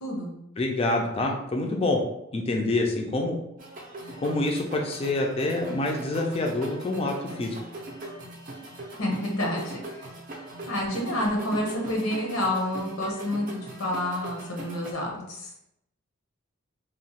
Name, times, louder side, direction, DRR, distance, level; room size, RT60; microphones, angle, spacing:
voice 1, 0.0-0.3 9.0-10.1 10.7-15.5, left 1 dB, 85° left, 0 dB, 0.7 m, -29 dB
voice 2, 0.6-2.0 2.3-3.4 4.2-7.5, left 2 dB, 30° left, 1 dB, 0.3 m, -26 dB
sound 1, 3.6-14.9, right 1 dB, 40° right, 0.5 m, -40 dB
2.9 x 2.0 x 2.8 m, 0.81 s
head